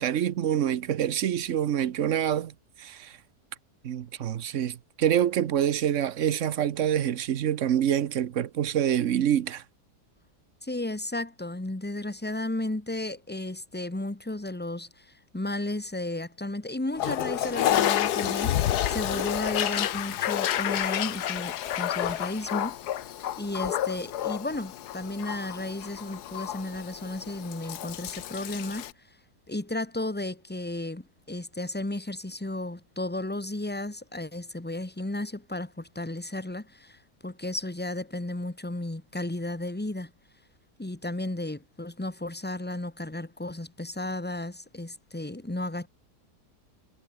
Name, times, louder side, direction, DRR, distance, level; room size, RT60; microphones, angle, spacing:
voice 1, 0.0-3.2 3.8-9.6, right 10 dB, 55° right, 1.0 m, -26 dB
voice 2, 10.6-22.8 23.4-28.9 29.5-40.1 40.8-45.9, left 1 dB, 5° left, 0.9 m, -34 dB
Toilet flush, 16.9-28.9, left 12 dB, 70° left, 1.4 m, -30 dB
omnidirectional pair, 1.8 m